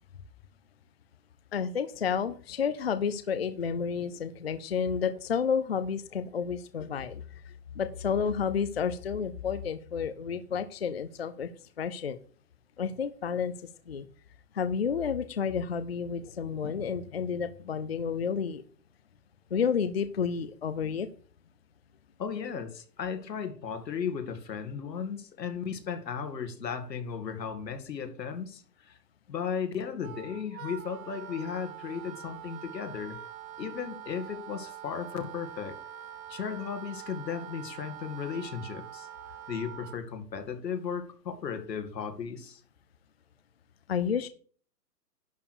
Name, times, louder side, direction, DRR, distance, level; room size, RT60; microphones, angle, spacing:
voice 1, 1.5-11.5 11.8-12.2 12.8-13.6 13.9-14.1 14.5-18.6 19.5-21.1 43.9-44.3, left 6 dB, 40° left, 11 dB, 0.5 m, -31 dB
voice 2, 22.2-29.0 29.3-33.2 33.6-35.8 36.3-39.1 39.5-42.6, left 7 dB, 85° left, 6 dB, 2.5 m, -35 dB
Wind instrument woodwind instrument, 30.0-40.0, right 10 dB, 55° right, 1.0 m, -44 dB
11.0 x 4.6 x 6.6 m, 0.43 s
hypercardioid pair, 175°, 49 cm